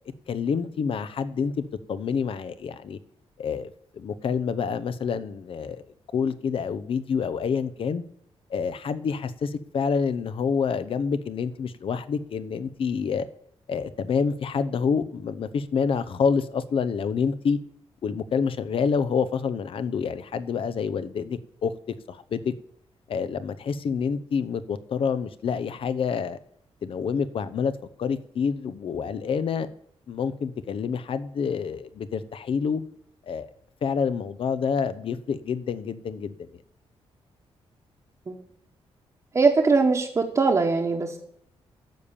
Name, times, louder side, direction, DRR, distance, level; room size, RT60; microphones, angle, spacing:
voice 1, 0.3-3.0 3.4-5.8 6.1-8.0 8.5-13.2 13.7-17.6 18.0-21.7 22.1-22.5 23.1-26.4 26.8-27.7 28.0-29.7 30.1-32.8 33.3-33.5 33.8-36.6, left 6 dB, 55° left, 13 dB, 0.8 m, -27 dB
voice 2, 39.3-41.2, right 4 dB, 30° right, -1 dB, 1.3 m, -21 dB
12.0 x 7.3 x 6.9 m, 0.69 s
wide cardioid pair, 135°, 11 cm